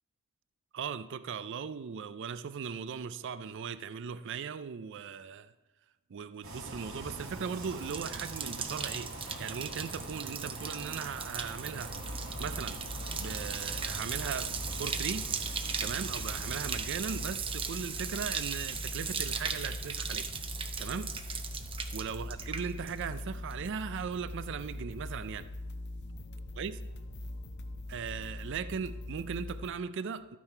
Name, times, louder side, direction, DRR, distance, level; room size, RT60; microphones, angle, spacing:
voice 1, 0.7-5.5 6.1-9.1 9.4-12.0 12.4-12.8 13.2-15.3 15.8-20.3 20.8-21.2 21.9-25.5 26.6-26.8 27.9-30.4, right 6 dB, 55° right, 0.4 m, -38 dB
sound 1, 6.4-17.2, right 1 dB, 80° right, 2.3 m, -44 dB
Bathtub (filling or washing), 7.1-23.2 23.5-24.0, right 6 dB, 25° right, 0.7 m, -38 dB
sound 2, 11.9-29.7, left 1 dB, 55° left, 0.7 m, -42 dB
13.0 x 9.3 x 4.4 m
head